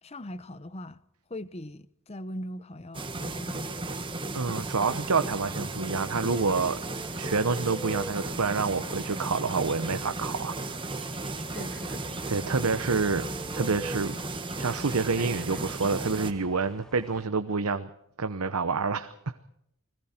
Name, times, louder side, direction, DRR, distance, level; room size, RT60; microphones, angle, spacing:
voice 1, 0.0-1.0 1.3-4.0 11.5-12.6, left 1 dB, 30° left, 0.8 m, -41 dB
sound 1, 2.9-16.3, right 2 dB, 25° right, 1.7 m, -35 dB
voice 2, 4.3-6.8 7.2-10.5 12.3-13.2 13.5-14.2 14.6-17.9 18.2-19.1, right 4 dB, 90° right, 0.9 m, -28 dB
sound 2, 6.2-17.3, right 1 dB, 5° left, 0.8 m, -46 dB
30.0 x 21.0 x 4.4 m
head